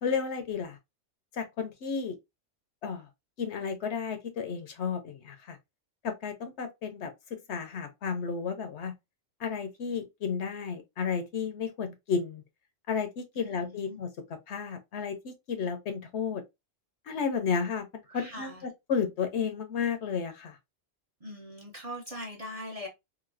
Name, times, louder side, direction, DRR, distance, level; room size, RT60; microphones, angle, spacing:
voice 1, 0.0-0.8 1.3-2.2 2.8-3.1 3.4-5.6 6.0-7.1 7.5-8.9 9.4-12.4 12.9-14.1 14.5-16.4 17.1-17.9 18.1-20.6, left 6 dB, 65° left, 0.8 m, -32 dB
voice 2, 13.3-14.0 18.1-18.6 21.2-22.9, equal, 35° right, 0.7 m, -41 dB
3.0 x 2.6 x 2.5 m
omnidirectional pair, 1.3 m